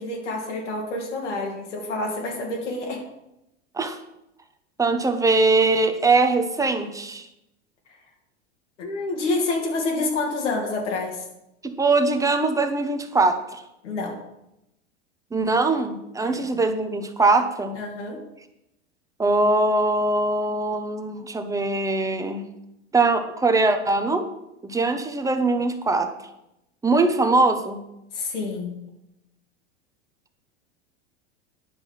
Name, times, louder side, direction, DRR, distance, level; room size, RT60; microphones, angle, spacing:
voice 1, 0.0-3.0 8.8-11.2 13.8-14.2 16.2-16.4 17.7-18.2 28.1-28.8, left 2 dB, 85° left, -1 dB, 2.8 m, -28 dB
voice 2, 4.8-7.3 11.6-13.6 15.3-17.8 19.2-22.4 22.9-24.3 24.6-26.1 26.8-27.8, right 3 dB, 10° right, 7 dB, 1.0 m, -22 dB
10.5 x 5.5 x 5.9 m, 0.87 s
hypercardioid pair, 110°, 35 cm